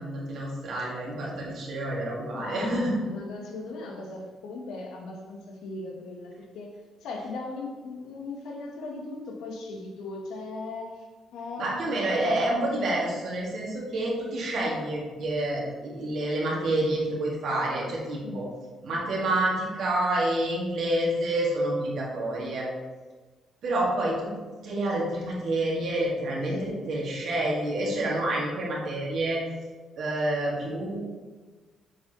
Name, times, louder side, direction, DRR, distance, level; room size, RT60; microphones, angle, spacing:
voice 1, 0.0-2.9 11.6-18.4 18.8-22.7 23.6-24.3 24.6-29.4 30.0-31.0, right 1 dB, 70° right, -4 dB, 1.9 m, -28 dB
voice 2, 2.4-6.7 7.0-11.1 11.3-12.0 18.2-18.5 26.5-26.8, left 3 dB, 85° left, 1 dB, 1.0 m, -38 dB
7.3 x 4.6 x 3.0 m, 1.3 s
cardioid pair, 90°, 0 cm